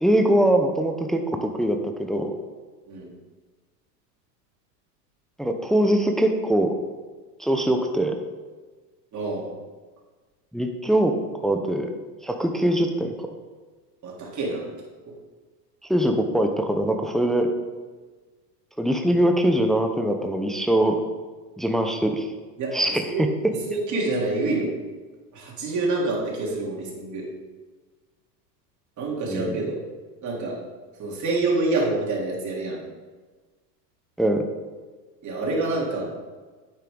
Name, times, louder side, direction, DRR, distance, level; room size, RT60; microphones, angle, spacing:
voice 1, 0.0-2.3 5.4-6.7 7.4-8.1 10.5-11.1 11.4-11.9 12.2-13.1 15.9-17.5 18.8-21.0 21.6-22.3 22.7-23.3 29.3-29.6 34.2-34.4, right 1 dB, ahead, 4 dB, 0.7 m, -22 dB
voice 2, 9.1-9.5 14.0-14.6 15.1-15.2 22.6-22.7 23.0-23.2 23.7-24.7 25.3-27.2 29.0-29.8 30.2-30.6 31.0-32.8 35.2-36.1, right 2 dB, 35° right, -3 dB, 3.3 m, -27 dB
9.0 x 8.8 x 3.8 m, 1.4 s
hypercardioid pair, 105°, 49 cm